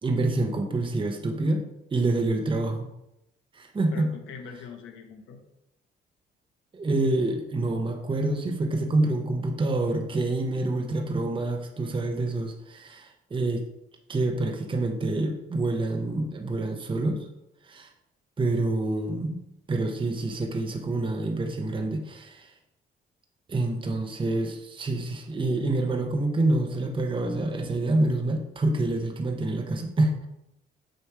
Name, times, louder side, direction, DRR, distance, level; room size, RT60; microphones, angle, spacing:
voice 1, 0.0-1.6 1.9-2.9 3.5-4.1 6.7-13.7 14.1-17.2 17.6-17.9 18.4-19.4 19.7-22.5 23.5-30.3, right 2 dB, 25° right, 3 dB, 0.8 m, -27 dB
voice 2, 3.9-5.4, left 5 dB, 85° left, 4 dB, 1.0 m, -42 dB
6.5 x 3.2 x 4.6 m, 0.85 s
cardioid pair, 90°, 20 cm